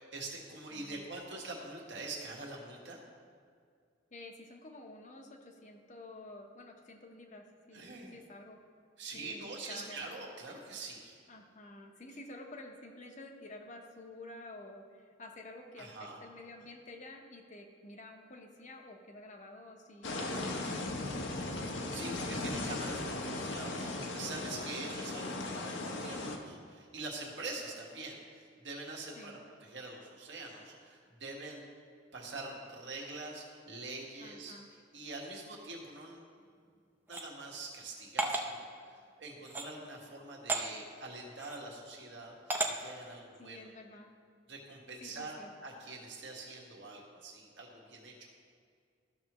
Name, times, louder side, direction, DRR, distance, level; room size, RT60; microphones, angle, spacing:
voice 1, 0.0-3.0 7.7-8.1 9.0-11.1 15.8-16.2 21.9-31.6 32.1-36.3 37.1-43.6 44.5-48.3, right 3 dB, 70° right, -2 dB, 1.6 m, -45 dB
voice 2, 0.7-1.1 4.1-7.9 8.1-8.6 9.1-10.1 11.3-21.7 24.6-25.1 29.2-29.4 34.2-34.7 43.4-44.1 45.0-45.5, left 2 dB, 40° left, 3 dB, 0.8 m, -50 dB
sound 1, 20.0-26.4, left 2 dB, 75° left, 0.8 m, -37 dB
sound 2, 37.1-37.2 38.2-38.5 39.4-39.7 40.5-40.6 41.4-41.6 42.5-42.7, right 2 dB, 10° right, 0.6 m, -33 dB
13.5 x 6.0 x 3.0 m, 2.1 s
head